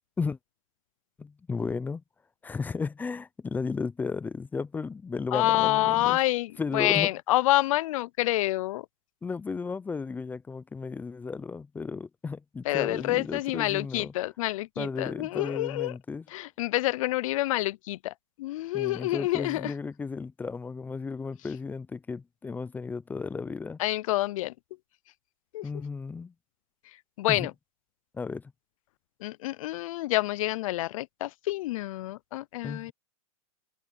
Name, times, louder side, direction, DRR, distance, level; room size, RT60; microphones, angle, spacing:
voice 1, 1.2-2.0 2.4-6.2 6.6-7.1 9.2-14.1 14.8-16.2 18.7-23.8 25.6-26.3 27.3-27.5 28.1-28.5 32.6-32.9, left 4 dB, 10° left, 0.5 m, -34 dB
voice 2, 5.3-8.9 12.6-15.9 16.3-19.7 23.8-24.5 25.5-25.6 26.8-27.5 29.2-32.9, left 17 dB, 65° left, 0.4 m, -28 dB
supercardioid pair, 140°, 19 cm